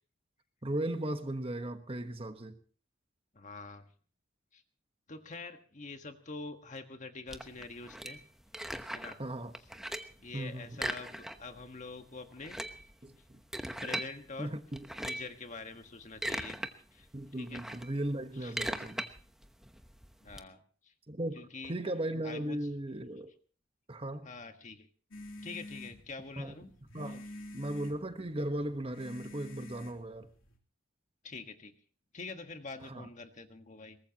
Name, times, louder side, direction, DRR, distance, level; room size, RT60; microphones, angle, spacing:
voice 1, 0.6-2.6 9.2-9.5 10.3-10.7 13.0-13.4 14.4-14.8 17.1-19.1 21.1-23.3 23.9-24.3 26.4-26.5 26.9-27.2 27.5-30.3 32.8-33.1, right 1 dB, 30° right, 1.2 m, -37 dB
voice 2, 3.3-3.9 4.5-4.6 5.1-8.2 8.9-9.2 10.2-12.6 13.8-14.6 15.0-16.6 16.9-17.6 18.3-18.5 20.2-20.9 21.3-21.9 22.2-22.6 24.2-24.9 25.4-26.7 27.1-27.2 31.2-31.7 32.1-34.0, left 3 dB, 40° left, 1.5 m, -45 dB
sound 1, 7.3-9.2 9.5-10.2 10.7-11.6 11.9-12.0 12.3-14.1 14.7-15.4 15.9-16.7 17.1-20.4, right 1 dB, ahead, 1.0 m, -39 dB
sound 2, 25.1-30.6, left 1 dB, 85° left, 3.2 m, -48 dB
22.5 x 19.0 x 3.0 m
head